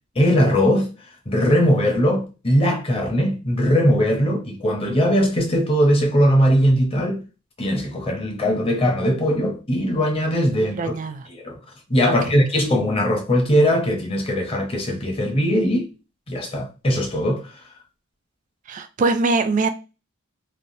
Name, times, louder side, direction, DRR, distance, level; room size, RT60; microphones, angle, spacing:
voice 1, 0.2-0.9 1.3-7.2 7.6-10.9 11.4-11.6 11.9-15.9 16.3-17.5, equal, 25° left, 0.7 m, -20 dB
voice 2, 10.6-11.3 12.1-12.4 18.7-19.7, right 3 dB, 40° right, 0.3 m, -23 dB
3.3 x 2.0 x 2.6 m
head